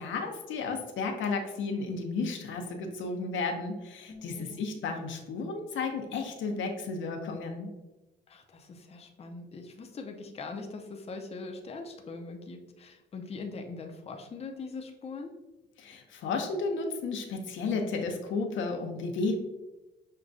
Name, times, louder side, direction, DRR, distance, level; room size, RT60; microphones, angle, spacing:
voice 1, 0.0-7.7 15.8-19.4, left 4 dB, 75° left, 3 dB, 0.7 m, -33 dB
voice 2, 4.1-4.6 8.3-15.3, left 4 dB, 30° left, 3 dB, 0.5 m, -42 dB
6.3 x 2.2 x 2.6 m, 1.1 s
cardioid pair, 90°, 20 cm